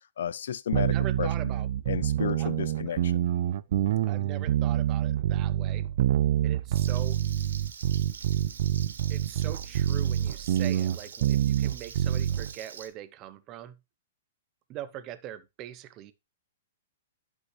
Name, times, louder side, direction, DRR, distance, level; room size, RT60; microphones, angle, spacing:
voice 1, 0.2-0.9 1.2-1.3 1.9-3.2, left 8 dB, 75° left, 0.5 m, -32 dB
voice 2, 0.7-1.7 2.4-2.5 2.9-3.0 4.1-5.8 6.4-7.2 9.1-13.8 14.7-16.1, right 12 dB, 30° right, 0.8 m, -42 dB
sound 1, 0.7-12.5, right 11 dB, 55° right, 0.4 m, -26 dB
Frying (food), 6.7-12.9, right 6 dB, 90° right, 2.3 m, -45 dB
11.5 x 5.5 x 3.1 m
hypercardioid pair, 150°, 0 cm